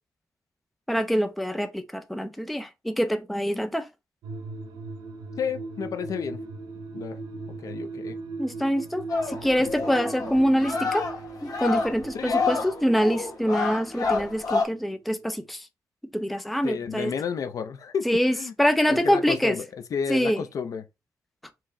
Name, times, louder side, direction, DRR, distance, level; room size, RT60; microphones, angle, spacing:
voice 1, 0.9-3.9 8.4-11.1 11.4-15.7 16.1-17.1 18.1-19.6 20.1-20.4, equal, ahead, 0.4 m, -25 dB
sound 1, 4.2-15.0 15.3-15.4, right 3 dB, 85° right, 0.8 m, -39 dB
voice 2, 5.4-6.4 6.9-7.2 7.6-8.2 9.6-9.7 12.1-12.5 16.6-18.5 18.9-20.8, left 6 dB, 60° left, 0.6 m, -31 dB
sound 2, 9.1-14.6, left 4 dB, 75° left, 1.8 m, -29 dB
4.5 x 3.0 x 3.7 m
wide cardioid pair, 140°, 7 cm